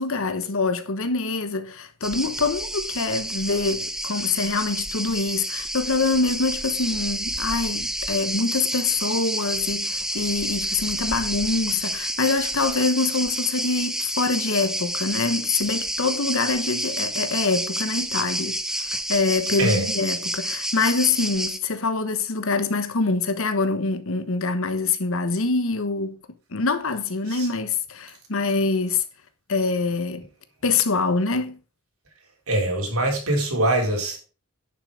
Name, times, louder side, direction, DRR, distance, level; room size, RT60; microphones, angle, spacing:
voice 1, 0.0-26.2 26.5-29.0 29.5-30.3 30.6-31.6, left 3 dB, 65° left, 1.1 m, -25 dB
sound 1, 2.0-21.6, right 1 dB, ahead, 0.7 m, -29 dB
voice 2, 32.5-34.2, right 1 dB, 75° right, 3.6 m, -23 dB
10.5 x 5.9 x 4.9 m
head